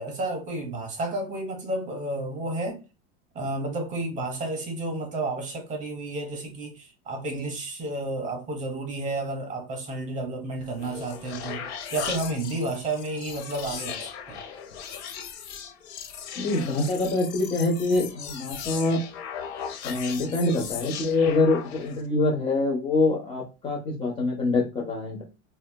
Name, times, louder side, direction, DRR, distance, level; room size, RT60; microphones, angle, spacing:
voice 1, 0.0-2.8 3.3-14.4, right 2 dB, 25° right, 0.8 m, -31 dB
sound 1, 10.6-22.1, left 7 dB, 80° left, 0.7 m, -38 dB
voice 2, 16.4-19.0 19.8-25.2, left 2 dB, 15° left, 0.5 m, -25 dB
3.6 x 2.2 x 2.2 m
supercardioid pair, 145°, 32 cm